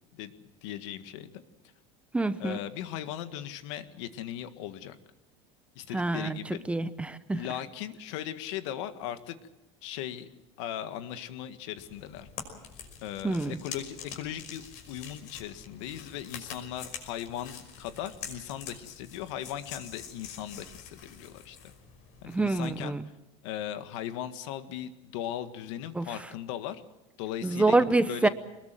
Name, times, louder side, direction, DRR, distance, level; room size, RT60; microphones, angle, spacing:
voice 1, 0.6-1.4 2.4-5.0 5.8-6.6 7.3-9.4 9.8-10.3 10.6-12.3 13.0-21.7 22.2-23.0 23.4-26.8 27.2-27.8 28.1-28.3, left 11 dB, 75° left, 10 dB, 1.8 m, -38 dB
voice 2, 2.1-2.6 5.9-6.4 6.7-7.4 13.2-13.5 22.3-23.0 25.9-26.1 27.4-28.3, right 2 dB, 10° right, 12 dB, 0.8 m, -26 dB
sound 1, 11.8-22.8, left 7 dB, 55° left, 5.6 m, -46 dB
23.5 x 20.5 x 7.7 m, 0.98 s
supercardioid pair, 145°, 16 cm